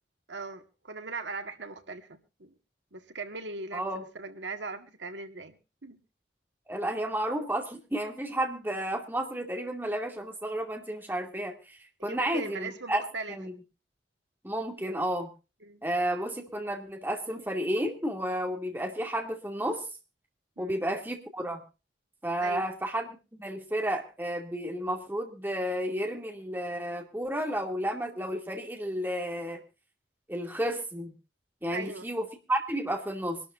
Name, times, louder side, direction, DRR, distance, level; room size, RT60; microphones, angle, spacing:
voice 1, 0.3-2.5 2.9-5.6 5.8-6.0 12.0-13.4 15.6-15.8 20.6-20.8 22.4-22.6 31.7-32.1, right 3 dB, 85° right, 8 dB, 1.8 m, -39 dB
voice 2, 3.7-4.0 6.7-13.5 14.4-15.3 15.8-19.9 20.6-21.6 22.2-29.6 30.3-31.1 31.6-33.4, right 1 dB, 10° right, 3 dB, 2.5 m, -32 dB
25.0 x 12.5 x 2.6 m, 0.31 s
head